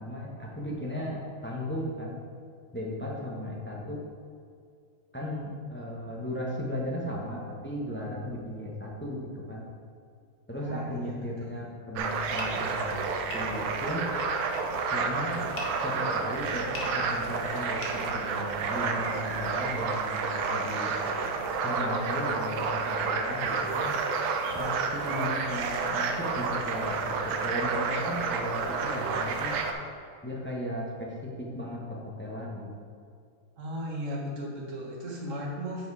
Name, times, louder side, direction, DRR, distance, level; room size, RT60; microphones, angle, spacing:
voice 1, 0.0-2.2 2.7-4.0 5.1-9.7 10.5-12.9 13.3-14.0 14.9-15.4 15.8-20.9 21.6-23.9 24.5-29.5 30.2-32.7, left 1 dB, 10° left, -4 dB, 0.8 m, -36 dB
voice 2, 10.6-11.6 33.6-35.9, equal, 40° right, -3 dB, 1.7 m, -36 dB
sound 1, 11.9-29.7, right 4 dB, 75° right, 1.5 m, -30 dB
sound 2, 12.4-18.8, left 3 dB, 55° left, 1.7 m, -43 dB
8.9 x 4.9 x 4.8 m, 2.3 s
omnidirectional pair, 2.3 m